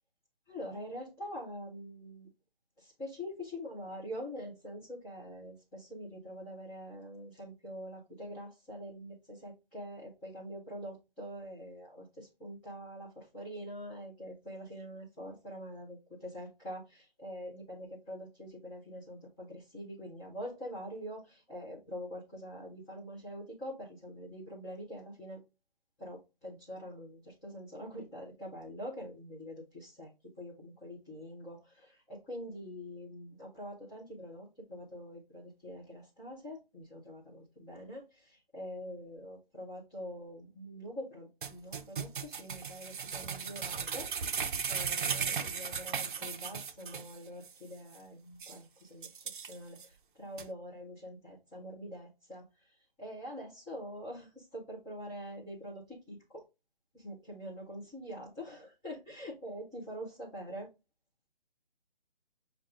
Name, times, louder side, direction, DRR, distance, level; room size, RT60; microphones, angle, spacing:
voice 1, 0.5-2.3 2.8-25.4 26.0-30.1 30.4-44.1 44.7-56.4 56.9-60.7, equal, 5° left, -9 dB, 0.5 m, -45 dB
sound 1, 41.4-47.2 47.4-47.5 47.9-48.0 48.4-48.6 49.0-49.9 50.4-50.5, right 6 dB, 55° right, 0.5 m, -36 dB
6.3 x 2.3 x 3.6 m, 0.26 s
figure-of-eight pair, 150°, 30 cm